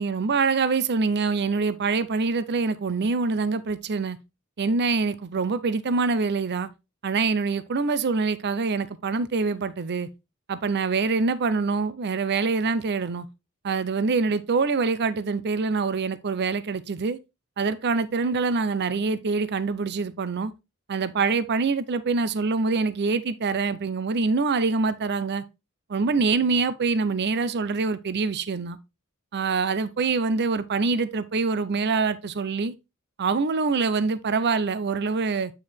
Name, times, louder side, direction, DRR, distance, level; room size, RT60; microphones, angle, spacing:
voice 1, 0.0-4.2 4.6-6.7 7.0-10.1 10.5-13.3 13.6-17.2 17.6-20.5 20.9-25.4 25.9-28.8 29.3-32.7 33.2-35.5, right 4 dB, 50° right, 0.6 m, -25 dB
8.6 x 4.6 x 3.5 m
head